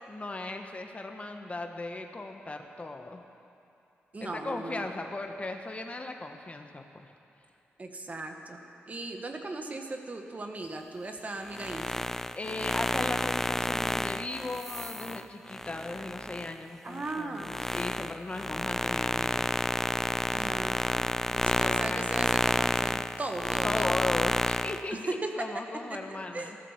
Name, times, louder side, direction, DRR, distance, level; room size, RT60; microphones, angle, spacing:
voice 1, 0.1-3.2 4.2-7.1 12.3-19.5 21.4-22.1 23.6-26.6, left 2 dB, 30° left, 5 dB, 1.2 m, -37 dB
voice 2, 4.1-4.9 7.8-12.1 16.8-17.5 20.3-24.0 24.9-25.3 26.1-26.5, right 2 dB, 35° right, 4 dB, 1.5 m, -38 dB
sound 1, 11.4-16.5 17.0-24.8, left 1 dB, 10° left, 0.4 m, -30 dB
14.5 x 13.0 x 7.4 m, 2.8 s
cardioid pair, 70°, 4 cm